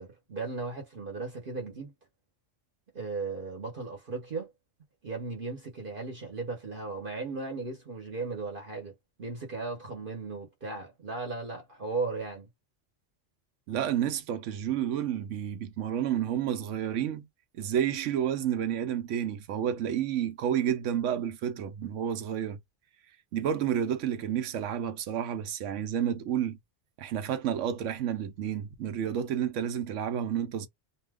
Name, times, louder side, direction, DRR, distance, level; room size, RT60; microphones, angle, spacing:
voice 1, 0.0-1.9 2.9-4.5 5.0-12.5, right 3 dB, 50° right, 1.0 m, -36 dB
voice 2, 13.7-17.3 17.5-22.6 23.3-26.6 27.0-30.7, right 9 dB, 80° right, 0.9 m, -30 dB
2.7 x 2.2 x 3.4 m
omnidirectional pair, 1.3 m